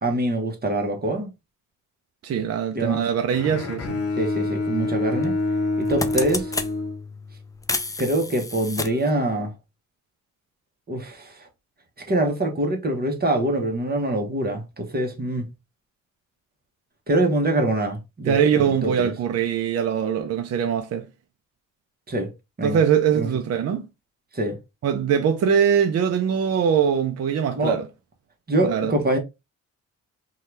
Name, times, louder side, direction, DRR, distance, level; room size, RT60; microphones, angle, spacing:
voice 1, 0.0-1.3 2.7-3.1 4.2-5.4 5.8-6.5 8.0-9.5 10.9-11.5 12.1-15.5 17.1-19.1 22.1-22.3 22.6-22.8 23.1-23.3 24.3-24.6 27.5-27.8 28.5-29.2, right 1 dB, 30° right, 1.0 m, -24 dB
voice 2, 2.2-4.1 18.3-21.1 22.6-23.9 24.8-27.8 28.6-28.9, right 8 dB, 50° right, 0.5 m, -22 dB
Bowed string instrument, 3.3-7.6, left 3 dB, 50° left, 0.8 m, -27 dB
sound 1, 3.8-3.9 5.2-5.4 5.7-6.7 7.6-9.1, left 3 dB, 10° left, 0.3 m, -30 dB
2.7 x 2.3 x 3.2 m
cardioid pair, 80°, 31 cm